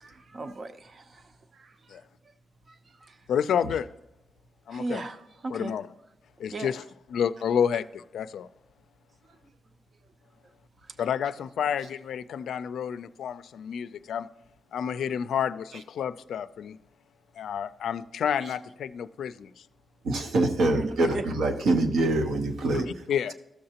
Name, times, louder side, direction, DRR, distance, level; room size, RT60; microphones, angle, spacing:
voice 1, 0.0-2.0 2.7-3.2 4.7-5.7 6.5-6.7 10.8-10.9 20.7-21.2 21.6-21.7, right 2 dB, 40° right, 0.6 m, -37 dB
voice 2, 3.3-3.9 4.7-5.0 5.5-5.9 6.4-6.8 7.1-8.5 11.0-14.3 14.7-16.8 17.4-19.5 22.7-23.3, left 8 dB, 85° left, 0.3 m, -30 dB
voice 3, 20.0-22.9, right 2 dB, 85° right, 1.0 m, -25 dB
14.0 x 6.6 x 2.8 m
wide cardioid pair, 125°, 0 cm